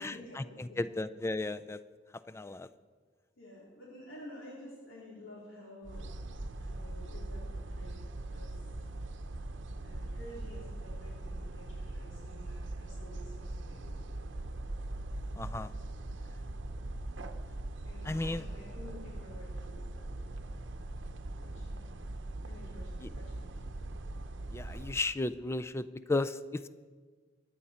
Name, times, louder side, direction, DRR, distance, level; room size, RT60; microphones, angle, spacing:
voice 1, 0.0-0.9 3.4-6.1 6.6-8.0 8.3-8.5 9.8-14.1 17.8-20.3 21.4-21.7 22.4-23.6, left 1 dB, 90° left, -6 dB, 3.4 m, -51 dB
voice 2, 0.8-1.8 2.3-2.7 15.4-15.7 18.1-18.4 24.5-26.4, left 2 dB, 15° left, 13 dB, 0.4 m, -34 dB
sound 1, 5.8-25.0, right 2 dB, 65° right, 0.8 m, -41 dB
23.5 x 9.8 x 4.3 m, 1.5 s
head